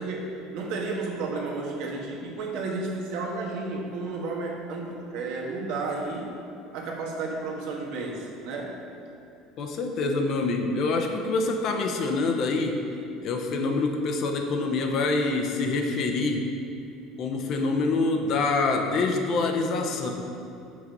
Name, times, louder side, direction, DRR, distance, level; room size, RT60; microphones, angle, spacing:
voice 1, 0.1-6.3 6.7-8.8, right 3 dB, 75° right, -1 dB, 1.4 m, -32 dB
voice 2, 9.6-12.8 13.2-16.5 17.2-20.1, left 3 dB, 50° left, 3 dB, 0.8 m, -26 dB
6.3 x 6.2 x 5.3 m, 2.7 s
cardioid pair, 130°, 0 cm